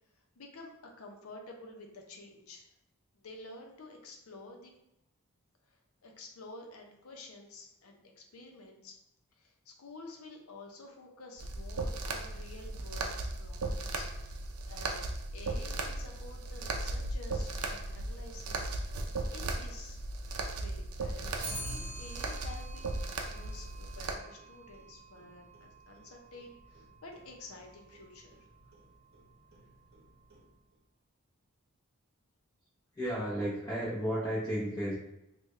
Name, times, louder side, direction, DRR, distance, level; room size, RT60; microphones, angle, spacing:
voice 1, 0.4-2.7 3.1-4.7 5.7-9.0 9.3-14.1 14.7-18.9 19.3-20.0 20.5-28.5, left 2 dB, 80° left, 2 dB, 0.6 m, -50 dB
sound 1, 11.4-24.1, right 2 dB, 80° right, 0.5 m, -37 dB
Clock, 21.4-30.8, right 2 dB, 45° right, 0.8 m, -49 dB
voice 2, 32.9-34.9, equal, 15° left, -8 dB, 0.7 m, -33 dB
3.5 x 2.2 x 3.1 m, 0.87 s
head